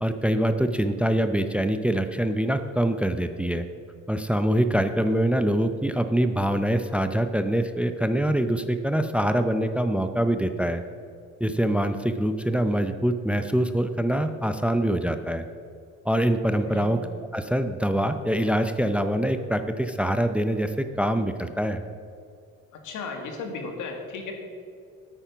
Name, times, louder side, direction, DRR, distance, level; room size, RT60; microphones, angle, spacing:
voice 1, 0.0-3.7 4.1-10.8 11.4-15.4 16.0-17.0 17.3-21.8, right 1 dB, 5° right, 9 dB, 0.6 m, -24 dB
voice 2, 16.6-17.0 22.7-24.3, left 4 dB, 80° left, 3 dB, 1.9 m, -35 dB
9.1 x 9.0 x 5.8 m, 2.3 s
cardioid pair, 90°, 30 cm